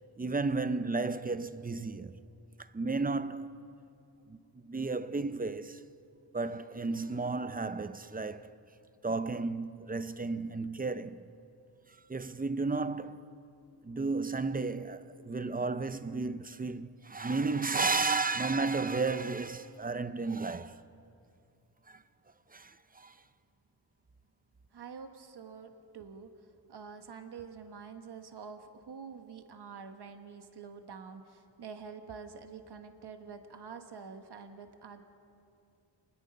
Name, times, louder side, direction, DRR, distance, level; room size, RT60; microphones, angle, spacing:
voice 1, 0.2-2.2 2.6-3.6 4.3-4.4 4.6-5.8 6.3-8.6 9.0-11.3 12.1-13.2 13.8-20.8 21.9-22.0 22.5-23.2, right 3 dB, 20° right, 0.6 m, -33 dB
voice 2, 24.7-35.0, right 6 dB, 65° right, 1.5 m, -47 dB
29.0 x 20.5 x 5.5 m
wide cardioid pair, 120°, 44 cm